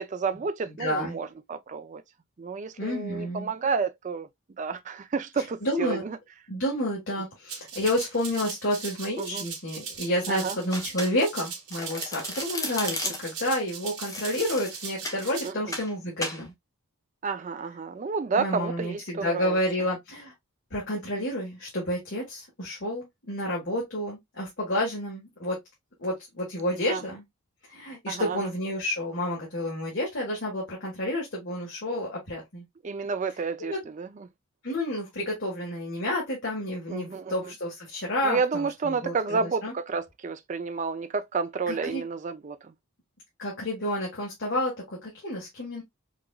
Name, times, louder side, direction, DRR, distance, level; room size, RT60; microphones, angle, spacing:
voice 1, 0.0-2.0 2.4-4.3 4.6-6.2 9.2-9.4 10.3-10.6 13.0-13.1 15.4-15.7 17.2-19.6 26.9-27.0 28.1-28.4 32.8-34.3 36.9-37.5 38.2-42.7, right 5 dB, 35° right, 0.3 m, -30 dB
voice 2, 0.7-1.2 2.8-3.5 5.4-6.0 6.5-16.5 18.4-20.3 20.7-25.6 26.0-27.2 27.7-32.6 33.6-33.8 34.6-39.7 41.7-42.0 43.4-45.8, left 1 dB, 55° left, 1.4 m, -30 dB
Rattle (instrument), 7.5-15.5, right 6 dB, 85° right, 1.5 m, -39 dB
Domestic sounds home sounds, 10.7-11.4 11.7-13.4 14.0-15.2 15.7-15.9 16.2-16.4, left 2 dB, 15° left, 0.7 m, -34 dB
4.7 x 2.5 x 2.3 m
head